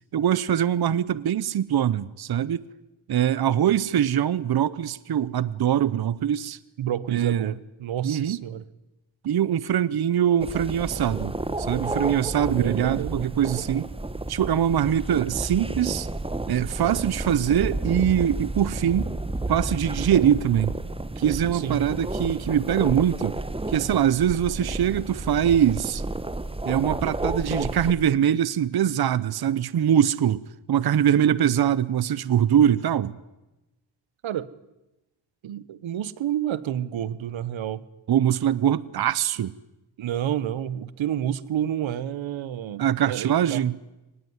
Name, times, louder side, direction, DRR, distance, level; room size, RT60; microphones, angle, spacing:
voice 1, 0.1-2.7 3.1-6.6 7.1-7.5 8.0-8.4 9.2-13.9 14.3-16.1 16.5-19.1 19.5-20.8 21.2-23.4 23.7-26.0 26.6-30.4 30.7-33.2 38.1-39.6 42.8-43.8, right 9 dB, 55° right, 0.8 m, -23 dB
voice 2, 6.8-8.6 12.6-13.1 21.5-21.8 34.2-34.5 35.4-37.8 40.0-43.7, right 10 dB, 85° right, 1.2 m, -29 dB
sound 1, 10.4-27.9, right 2 dB, 10° right, 1.5 m, -31 dB
23.5 x 19.5 x 9.6 m
cardioid pair, 100°, 46 cm